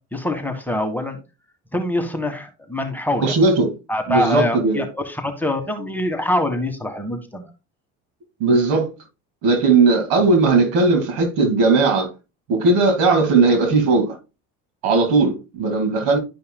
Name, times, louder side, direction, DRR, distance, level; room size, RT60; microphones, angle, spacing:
voice 1, 0.1-1.2 1.7-3.4 3.9-7.5, left 1 dB, 5° left, 1.6 m, -24 dB
voice 2, 3.2-3.7 4.1-4.8 8.4-8.9 9.4-12.1 12.5-14.2 14.8-16.2, right 3 dB, 80° right, 2.6 m, -17 dB
11.5 x 5.4 x 2.3 m
supercardioid pair, 90°, 33 cm